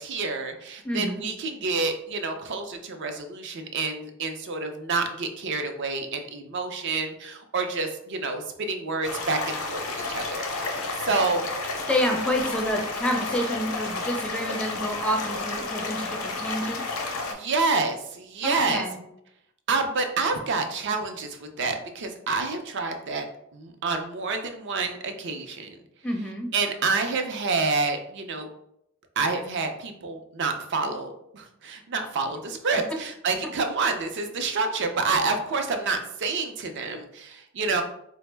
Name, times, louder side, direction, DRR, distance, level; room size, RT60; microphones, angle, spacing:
voice 1, 0.0-11.5 17.3-18.8 19.7-23.2 23.5-25.8 26.5-28.5 29.2-37.8, right 4 dB, 55° right, 6 dB, 0.5 m, -28 dB
voice 2, 0.8-1.3 11.9-16.8 18.4-19.0 26.0-26.5, equal, 5° left, 1 dB, 0.4 m, -28 dB
sound 1, 9.0-17.3, left 3 dB, 85° left, 0.7 m, -31 dB
4.3 x 2.0 x 3.3 m, 0.76 s
head